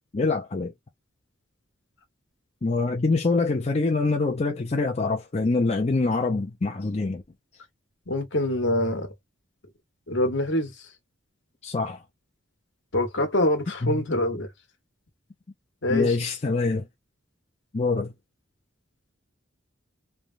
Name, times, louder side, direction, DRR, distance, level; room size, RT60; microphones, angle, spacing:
voice 1, 0.1-0.7 2.6-7.2 11.6-12.0 13.8-14.0 15.9-16.9 17.7-18.1, left 3 dB, 35° left, 0.5 m, -25 dB
voice 2, 8.1-9.1 10.1-10.7 12.9-14.5 15.8-16.2, left 1 dB, 65° left, 1.1 m, -25 dB
3.2 x 2.1 x 2.5 m
head